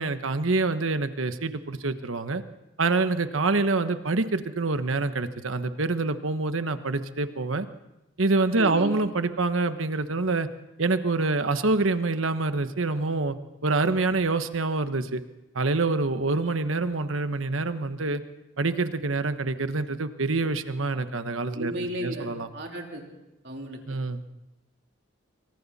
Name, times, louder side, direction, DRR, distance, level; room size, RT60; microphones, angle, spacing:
voice 1, 0.0-2.4 2.8-7.7 8.2-10.5 10.8-13.3 13.6-15.2 15.5-18.2 18.6-21.7 22.0-22.5 23.9-24.2, right 3 dB, 85° right, 10 dB, 1.2 m, -26 dB
voice 2, 8.6-8.9 21.5-23.1 23.4-23.8, equal, 55° right, 1 dB, 3.4 m, -34 dB
25.5 x 24.5 x 4.2 m, 0.96 s
head